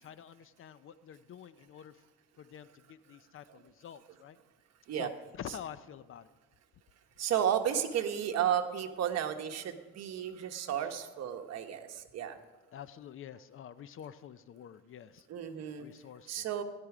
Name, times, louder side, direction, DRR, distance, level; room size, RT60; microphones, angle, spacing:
voice 1, 0.0-2.0 2.4-4.4 4.9-5.1 5.4-6.3 10.8-10.9 12.7-15.3 15.8-16.5, left 9 dB, 45° left, 15 dB, 0.5 m, -48 dB
voice 2, 7.2-12.4 15.3-15.9 16.3-16.6, right 9 dB, 60° right, 6 dB, 1.3 m, -33 dB
16.5 x 11.0 x 5.0 m, 1.2 s
cardioid pair, 135°, 30 cm